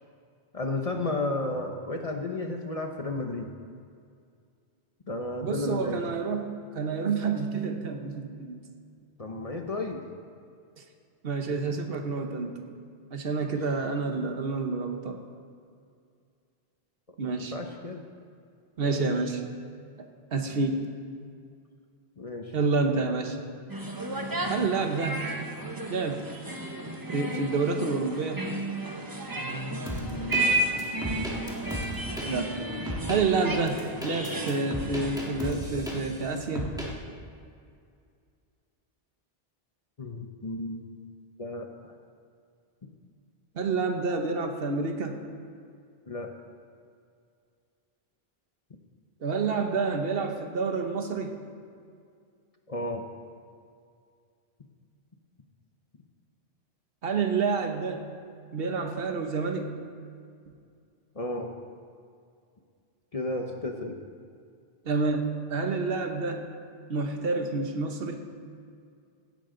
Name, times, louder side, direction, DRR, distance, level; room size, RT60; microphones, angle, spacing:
voice 1, 0.5-3.5 5.1-6.0 9.2-10.0 13.6-13.7 17.5-18.0 18.8-19.1 22.2-22.5 29.9-30.6 40.0-40.8 41.4-41.9 46.1-46.3 52.7-53.0 61.1-61.5 63.1-64.0, left 2 dB, 35° left, 3 dB, 0.9 m, -33 dB
voice 2, 5.4-6.5 6.7-8.6 11.2-12.6 13.1-15.2 17.2-17.5 18.8-19.4 20.0-20.8 22.5-23.4 24.5-25.3 25.9-26.3 27.1-28.4 32.2-32.5 33.1-36.7 43.5-45.2 49.2-51.4 57.0-58.0 58.5-59.7 64.8-66.5 66.9-68.2, right 4 dB, 65° right, 5 dB, 1.3 m, -28 dB
sound 1, 23.7-35.5, right 1 dB, 20° right, 0.9 m, -33 dB
sound 2, 29.9-30.4 30.8-32.3 32.9-33.2 33.7-36.2 36.6-36.9, equal, 5° right, 1.9 m, -35 dB
16.5 x 11.5 x 3.9 m, 2.3 s
omnidirectional pair, 1.1 m